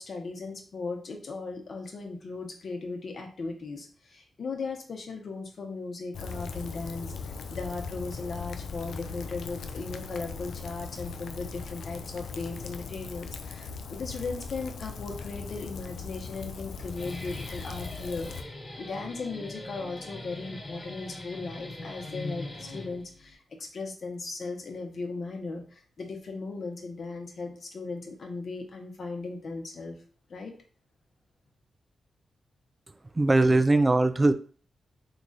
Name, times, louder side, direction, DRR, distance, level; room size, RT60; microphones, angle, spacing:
voice 1, 0.0-30.0 30.3-30.5, left 3 dB, 60° left, 2 dB, 0.8 m, -37 dB
Rain, 6.1-18.4, left 5 dB, 80° left, 0.3 m, -39 dB
Guitar, 16.7-23.3, left 1 dB, 35° left, 1.2 m, -41 dB
voice 2, 33.2-34.3, right 2 dB, 30° right, 10 dB, 0.3 m, -20 dB
3.0 x 2.4 x 3.9 m, 0.41 s
cardioid pair, 55°, 0 cm